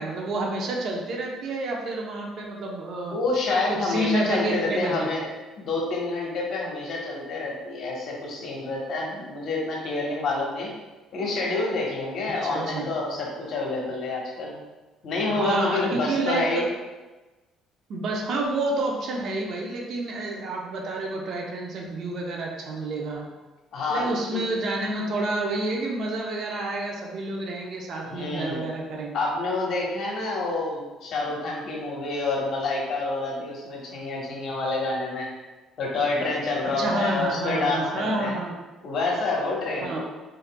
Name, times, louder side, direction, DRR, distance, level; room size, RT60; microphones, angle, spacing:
voice 1, 0.0-3.2 3.8-5.1 12.4-12.9 15.3-16.7 17.9-23.3 23.9-29.2 36.8-38.5 39.8-40.0, right 2 dB, 60° right, 0 dB, 0.8 m, -29 dB
voice 2, 3.1-5.3 5.6-10.7 11.1-14.5 15.0-16.7 23.7-24.5 28.0-28.6 29.1-35.3 35.8-38.3 38.8-40.0, left 3 dB, 60° left, -3 dB, 1.2 m, -28 dB
4.0 x 3.9 x 2.3 m, 1.2 s
supercardioid pair, 80°, 0 cm